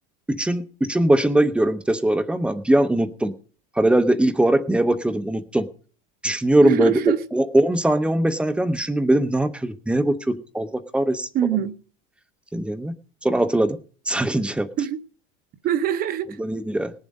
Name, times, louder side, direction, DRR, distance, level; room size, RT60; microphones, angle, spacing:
voice 1, 0.3-3.3 3.8-5.7 6.2-7.0 7.3-11.3 12.5-12.9 13.2-13.8 14.1-14.7 16.4-16.9, right 1 dB, 5° right, 0.7 m, -21 dB
voice 2, 6.6-7.2 11.3-11.8 14.8-15.0 15.6-16.4, right 9 dB, 30° right, 0.9 m, -23 dB
19.0 x 7.3 x 5.3 m
supercardioid pair, 160°, 30 cm